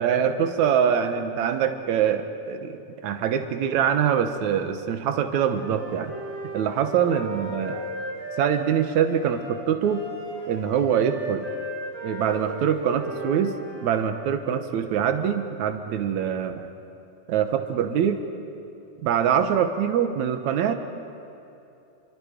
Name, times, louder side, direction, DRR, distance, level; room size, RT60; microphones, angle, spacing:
voice 1, 0.0-6.1 6.5-7.9 8.4-10.0 10.5-11.5 12.0-13.6 13.8-16.7 17.3-18.2 19.0-20.7, right 8 dB, 65° right, 7 dB, 2.1 m, -24 dB
Wind instrument woodwind instrument, 5.5-14.0, right 1 dB, 20° right, 8.2 m, -37 dB
29.0 x 23.5 x 5.1 m, 2.8 s
omnidirectional pair, 4.3 m